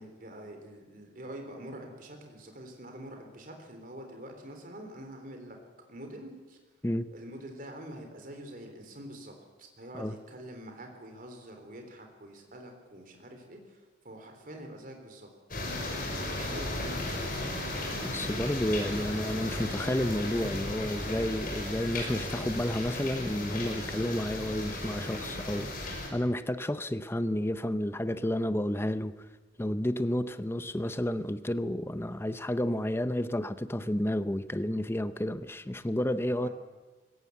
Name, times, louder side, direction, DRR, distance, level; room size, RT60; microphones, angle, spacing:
voice 1, 0.0-5.6 5.9-6.6 7.1-15.6 16.3-17.2 36.3-36.5, right 1 dB, 50° right, 3.6 m, -46 dB
sound 1, 15.5-26.1, left 1 dB, 50° left, 6.0 m, -35 dB
voice 2, 18.0-25.7 26.1-29.1 29.6-36.5, left 1 dB, 15° left, 0.6 m, -31 dB
21.0 x 17.0 x 8.2 m
head